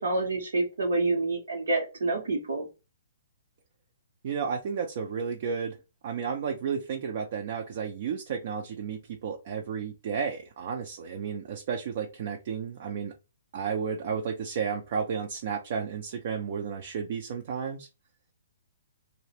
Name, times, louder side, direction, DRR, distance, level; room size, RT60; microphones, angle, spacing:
voice 1, 0.0-2.7, right 2 dB, 85° right, -2 dB, 0.7 m, -28 dB
voice 2, 4.2-5.8 6.0-13.1 13.5-17.9, right 6 dB, 50° right, 3 dB, 0.4 m, -32 dB
2.5 x 2.0 x 2.8 m, 0.28 s
hypercardioid pair, 150°, 0 cm